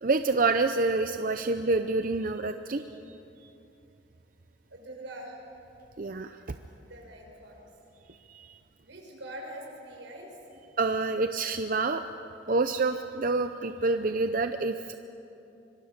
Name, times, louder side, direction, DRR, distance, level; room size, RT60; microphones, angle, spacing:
voice 1, 0.0-2.8 6.0-6.4 8.3-8.5 10.8-12.0 12.5-14.9, right 3 dB, 50° right, 8 dB, 0.6 m, -27 dB
voice 2, 4.7-5.4 6.7-7.7 8.8-10.6, right 1 dB, 90° right, 0 dB, 6.0 m, -44 dB
25.5 x 23.0 x 6.6 m, 2.8 s
head